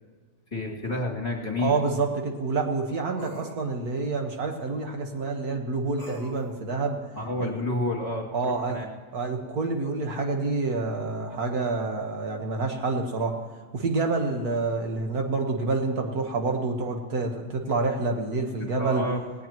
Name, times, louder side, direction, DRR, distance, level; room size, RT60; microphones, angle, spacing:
voice 1, 0.5-1.8 7.2-8.3 8.7-8.8 18.7-19.2, left 2 dB, 25° left, -3 dB, 2.7 m, -29 dB
sound 1, 0.8-0.9 3.2-3.6 6.0-6.5, right 2 dB, 25° right, 4.3 m, -44 dB
voice 2, 1.6-7.0 7.4-7.6 8.3-8.8 9.1-13.4 13.7-19.0, right 3 dB, 70° right, 3 dB, 1.9 m, -28 dB
18.5 x 18.5 x 3.0 m, 1.5 s
omnidirectional pair, 1.7 m